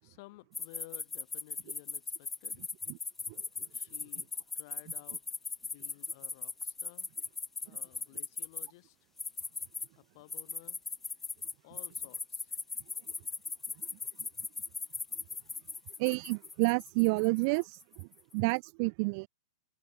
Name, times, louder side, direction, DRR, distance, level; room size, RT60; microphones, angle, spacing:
voice 1, 0.0-2.7 3.7-5.2 5.6-7.1 7.6-9.0 10.0-10.8 11.6-12.5, left 23 dB, 50° left, 3.7 m, -55 dB
sound 1, 0.5-8.7 9.2-9.9 10.3-18.1, left 4 dB, 10° left, 0.6 m, -38 dB
voice 2, 16.0-18.1 18.3-19.3, right 32 dB, 45° right, 0.3 m, -29 dB
hypercardioid pair, 125°, 2 cm